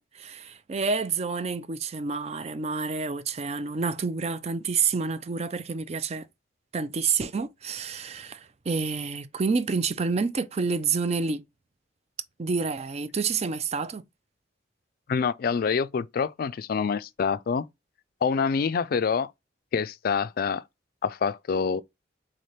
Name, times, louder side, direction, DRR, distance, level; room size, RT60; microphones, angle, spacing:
voice 1, 0.0-6.3 6.7-11.4 12.4-14.0, right 4 dB, 35° right, 0.5 m, -28 dB
voice 2, 15.1-17.7 18.2-19.3 19.7-20.6 21.0-21.8, left 6 dB, 55° left, 0.3 m, -26 dB
3.8 x 3.3 x 4.1 m
head